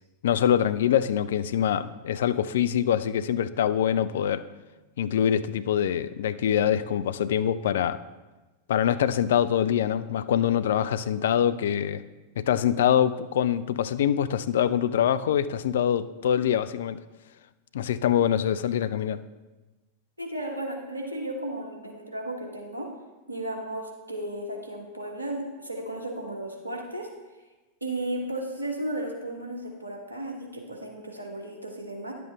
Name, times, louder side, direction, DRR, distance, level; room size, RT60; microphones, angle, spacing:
voice 1, 0.2-4.5 5.0-8.0 8.7-12.0 12.4-17.0 17.7-19.2, left 9 dB, 60° left, 14 dB, 0.3 m, -24 dB
voice 2, 20.2-22.9 23.3-27.1 27.8-32.1, right 1 dB, 85° right, 1 dB, 1.3 m, -34 dB
10.5 x 7.6 x 3.5 m, 1.2 s
figure-of-eight pair, 90°, 0 cm